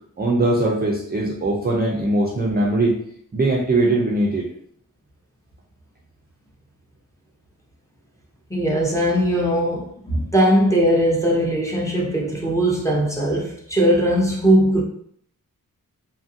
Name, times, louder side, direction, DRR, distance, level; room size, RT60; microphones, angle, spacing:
voice 1, 0.2-3.0 3.3-4.5, right 2 dB, 25° right, -4 dB, 0.5 m, -20 dB
voice 2, 8.5-14.8, equal, 10° left, -4 dB, 0.7 m, -19 dB
2.8 x 2.6 x 2.6 m, 0.65 s
wide cardioid pair, 115°, 35 cm